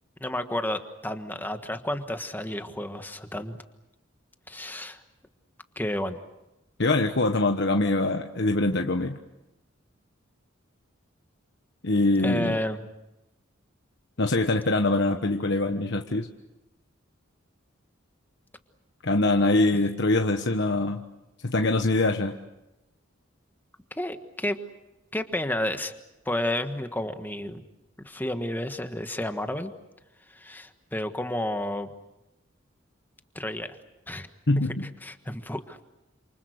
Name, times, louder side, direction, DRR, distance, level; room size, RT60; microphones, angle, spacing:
voice 1, 0.2-3.6 4.5-5.0 5.7-6.2 12.2-12.9 24.0-24.6 25.1-25.9 26.2-27.6 28.0-29.7 30.3-31.9 33.3-33.8 34.1-34.3 35.0-35.9, left 1 dB, 10° left, 8 dB, 1.4 m, -31 dB
voice 2, 6.8-9.2 11.8-12.6 14.2-16.3 19.0-21.0 21.4-22.4 34.5-34.9, left 2 dB, 60° left, 4 dB, 1.3 m, -23 dB
29.0 x 27.5 x 6.5 m, 0.95 s
head